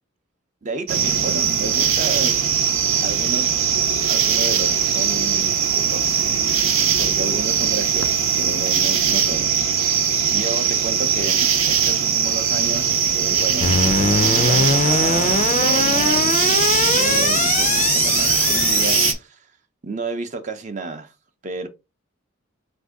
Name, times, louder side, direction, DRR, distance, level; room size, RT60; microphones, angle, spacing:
voice 1, 0.6-2.4 3.0-3.6 4.1-19.5 19.8-21.1 21.4-21.7, right 3 dB, 35° right, 0.5 m, -32 dB
sound 1, 0.9-19.1, right 7 dB, 90° right, 0.7 m, -20 dB
sound 2, 13.6-19.1, left 5 dB, 35° left, 0.4 m, -21 dB
4.3 x 2.6 x 3.5 m
head